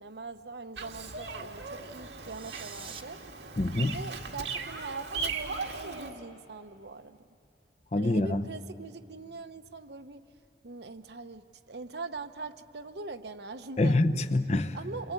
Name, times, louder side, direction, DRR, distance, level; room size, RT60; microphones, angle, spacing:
voice 1, 0.0-3.2 3.9-7.2 8.0-10.2 10.6-14.0 14.7-15.1, right 3 dB, 70° right, 0.9 m, -42 dB
Bird vocalization bird call bird song, 0.8-6.1, right 4 dB, 90° right, 1.8 m, -38 dB
sound 1, 2.2-3.0, right 6 dB, 30° right, 1.0 m, -46 dB
voice 2, 3.6-4.0 7.9-8.5 13.8-14.8, left 2 dB, 40° left, 0.7 m, -26 dB
28.5 x 24.0 x 8.4 m
head